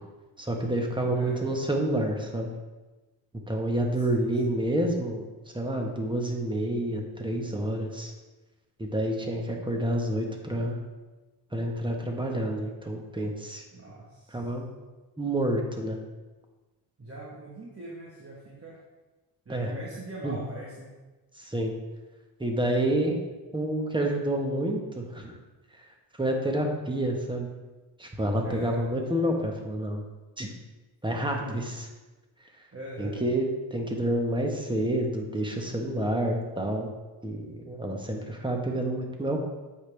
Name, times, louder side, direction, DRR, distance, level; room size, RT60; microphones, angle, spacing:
voice 1, 0.4-2.5 3.5-5.2 5.5-8.1 8.8-10.8 11.5-13.6 14.3-14.6 15.2-16.0 19.5-19.7 20.2-20.4 21.4-21.7 22.4-23.2 23.5-25.4 26.2-27.5 28.0-30.0 30.4-30.5 31.0-31.9 33.0-33.4 33.7-36.9 37.2-39.4, right 1 dB, 10° right, 2 dB, 1.3 m, -28 dB
voice 2, 1.1-1.6 3.9-4.6 13.7-14.4 17.0-18.8 19.4-20.9 28.4-28.9 32.7-33.2, right 2 dB, 30° right, -4 dB, 1.4 m, -42 dB
8.0 x 5.2 x 3.4 m, 1.2 s
cardioid pair, 75°, 43 cm